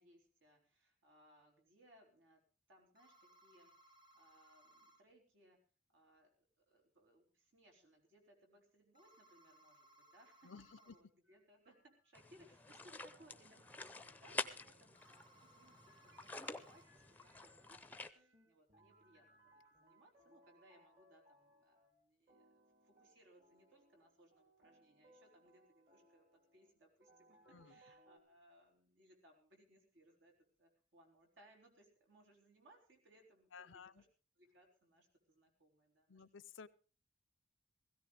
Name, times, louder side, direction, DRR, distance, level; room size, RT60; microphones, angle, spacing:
voice 1, 0.0-2.4 2.7-5.6 5.9-6.3 6.7-34.1 34.4-36.2, right 1 dB, 75° right, 1 dB, 4.1 m, -68 dB
sound 1, 2.9-5.0 8.9-11.0 14.9-16.8, right 1 dB, 25° right, 1.5 m, -67 dB
voice 2, 10.4-11.0 27.5-27.7 33.5-34.0 36.1-36.7, left 5 dB, 85° left, 18 dB, 0.7 m, -55 dB
sound 2, 11.2-12.5 13.1-28.2, right 1 dB, 50° right, 4.0 m, -70 dB
sound 3, 12.1-18.1, left 3 dB, 10° left, 0.6 m, -48 dB
17.0 x 16.5 x 3.5 m, 0.35 s
head